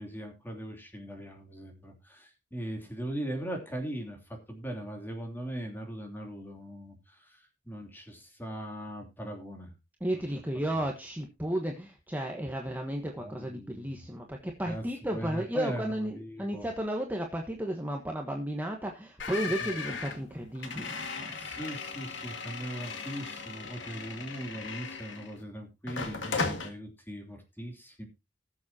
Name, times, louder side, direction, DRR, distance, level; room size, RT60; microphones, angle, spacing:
voice 1, 0.0-9.7 10.1-10.2 10.7-10.8 13.2-14.0 14.6-16.7 19.6-19.7 21.4-28.1, right 1 dB, 10° left, 3 dB, 3.0 m, -40 dB
voice 2, 10.0-21.4, right 1 dB, 10° right, 1 dB, 1.2 m, -33 dB
sound 1, 19.2-25.4 25.9-26.7, left 4 dB, 85° left, 2.0 m, -37 dB
19.5 x 7.4 x 2.8 m, 0.24 s
head